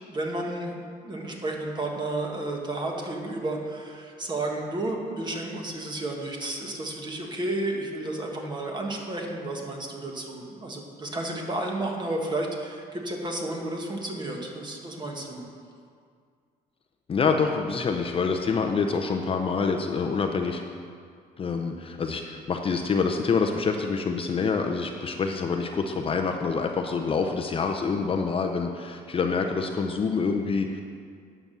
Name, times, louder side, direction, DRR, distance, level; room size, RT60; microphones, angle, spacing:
voice 1, 0.1-15.4, right 2 dB, 25° right, 0 dB, 1.7 m, -32 dB
voice 2, 17.1-20.6 21.4-30.8, left 5 dB, 35° left, 4 dB, 0.6 m, -26 dB
9.3 x 5.9 x 6.8 m, 2.1 s
cardioid pair, 110°, 17 cm